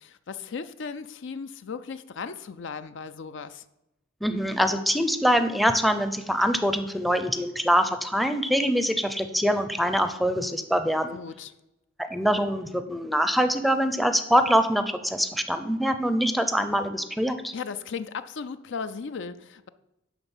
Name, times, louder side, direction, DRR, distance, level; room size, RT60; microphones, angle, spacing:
voice 1, 0.0-3.6 11.1-11.5 17.5-19.7, left 5 dB, 65° left, 12 dB, 0.5 m, -36 dB
voice 2, 4.2-11.2 12.0-17.5, equal, ahead, 9 dB, 0.6 m, -24 dB
11.0 x 3.9 x 7.2 m, 0.91 s
head